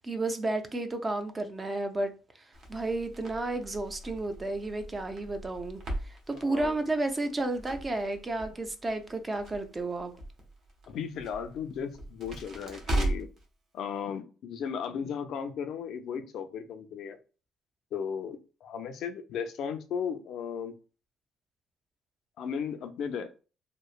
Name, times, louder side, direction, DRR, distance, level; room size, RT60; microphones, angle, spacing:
voice 1, 0.0-2.1 2.4-10.1, right 2 dB, 20° right, 7 dB, 0.4 m, -32 dB
Crackle, 2.5-13.4, right 1 dB, 55° right, 0.8 m, -38 dB
voice 2, 6.3-6.8 10.9-13.3 13.7-17.2 17.9-20.7 22.4-23.4, left 7 dB, 65° left, 8 dB, 0.4 m, -36 dB
3.0 x 2.0 x 2.4 m, 0.35 s
cardioid pair, 115°, 0 cm